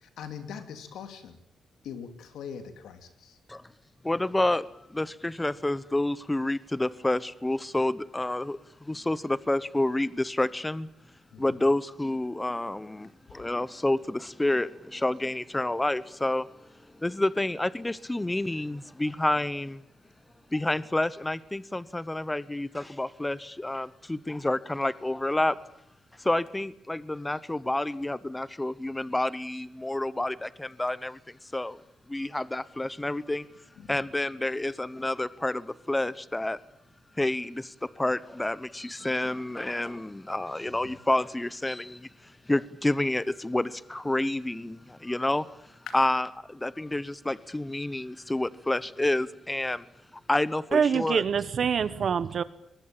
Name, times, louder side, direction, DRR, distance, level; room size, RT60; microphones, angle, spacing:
voice 1, 0.0-1.4 1.8-3.4 11.3-11.6 33.8-34.0 45.9-46.0, left 7 dB, 85° left, 8 dB, 2.8 m, -42 dB
voice 2, 4.0-10.9 11.4-16.5 17.0-19.8 20.5-25.6 26.2-31.2 31.5-31.8 32.1-33.5 33.9-36.6 37.2-42.1 42.5-45.5 45.9-49.8 50.3-51.2, left 1 dB, 15° left, 17 dB, 0.9 m, -29 dB
voice 3, 50.7-52.4, right 7 dB, 60° right, 15 dB, 1.3 m, -25 dB
23.0 x 20.5 x 8.9 m, 0.77 s
cardioid pair, 90°, 0 cm